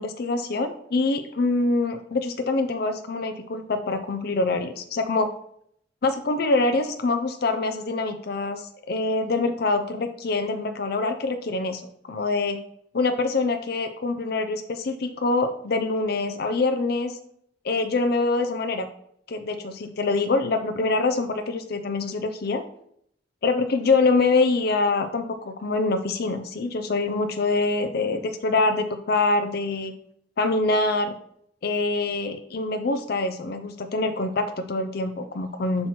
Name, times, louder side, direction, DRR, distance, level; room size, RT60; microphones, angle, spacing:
voice 1, 0.0-5.3 6.0-11.8 12.1-12.6 12.9-17.2 17.6-18.9 19.3-22.6 23.4-29.9 30.4-31.2 31.6-35.9, left 3 dB, 60° left, 7 dB, 0.5 m, -25 dB
7.3 x 5.8 x 3.1 m, 0.70 s
head